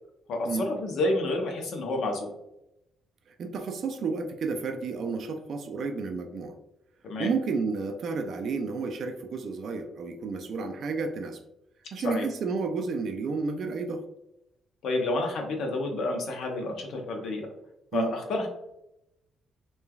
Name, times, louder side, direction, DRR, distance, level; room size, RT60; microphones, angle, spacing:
voice 1, 0.3-2.3 7.0-7.3 12.0-12.2 14.8-17.5 17.9-18.5, left 2 dB, 75° left, 2 dB, 0.7 m, -29 dB
voice 2, 3.3-6.6 7.2-11.4 11.9-14.0 17.9-18.1, right 4 dB, 60° right, 5 dB, 0.3 m, -31 dB
3.1 x 2.2 x 2.2 m, 0.85 s
cardioid pair, 90°, 0 cm